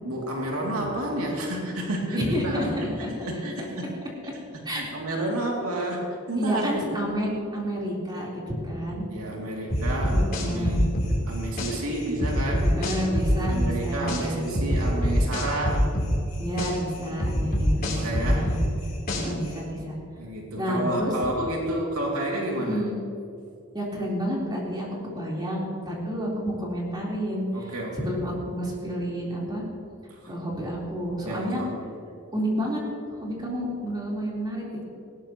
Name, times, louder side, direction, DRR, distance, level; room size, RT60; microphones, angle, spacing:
voice 1, 0.0-2.9 3.2-3.9 4.5-6.9 9.1-12.7 13.5-15.9 17.4-18.5 20.2-22.8 27.5-28.1 30.1-30.3 31.2-31.7, right 1 dB, 85° right, -2 dB, 2.7 m, -30 dB
voice 2, 2.1-2.6 3.8-3.9 4.6-4.9 6.4-9.0 10.1-10.8 12.6-14.4 16.4-18.6 19.1-19.9 20.6-21.1 22.6-23.0 23.7-29.6 30.3-31.6 32.3-32.8 33.1-34.8, equal, 20° right, -5 dB, 4.0 m, -30 dB
sound 1, 9.7-11.7 12.2-14.2 14.5-16.7 17.2-19.5, equal, 45° left, 3.7 m, -26 dB
19.0 x 17.5 x 3.1 m, 2.6 s
head